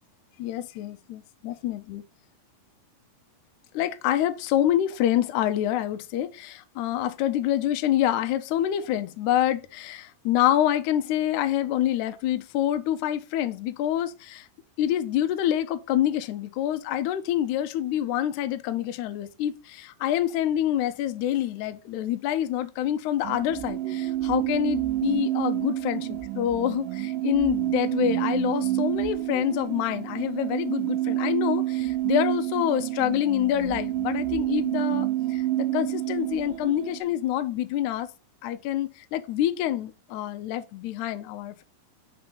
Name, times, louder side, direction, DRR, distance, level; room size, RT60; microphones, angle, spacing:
voice 1, 0.4-2.0 3.7-14.5 14.8-38.1 38.4-41.6, left 12 dB, 90° left, 1.7 m, -27 dB
sound 1, 23.2-37.0, right 14 dB, 80° right, 2.3 m, -28 dB
5.8 x 3.8 x 5.0 m
omnidirectional pair, 4.1 m